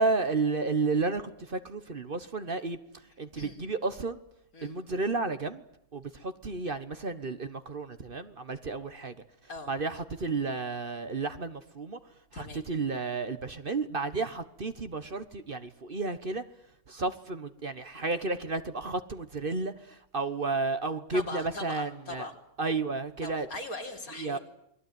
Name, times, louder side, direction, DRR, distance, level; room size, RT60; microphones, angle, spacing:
voice 1, 0.0-2.8 3.2-4.2 4.6-5.6 5.9-9.1 9.7-12.0 12.4-16.4 16.9-22.3 22.6-23.5 24.2-24.4, right 3 dB, 40° right, 10 dB, 1.3 m, -32 dB
voice 2, 12.3-12.6 14.2-14.3 21.1-22.3 23.2-24.4, left 2 dB, 80° left, 2 dB, 4.4 m, -40 dB
28.5 x 21.5 x 9.5 m, 0.77 s
omnidirectional pair, 1.5 m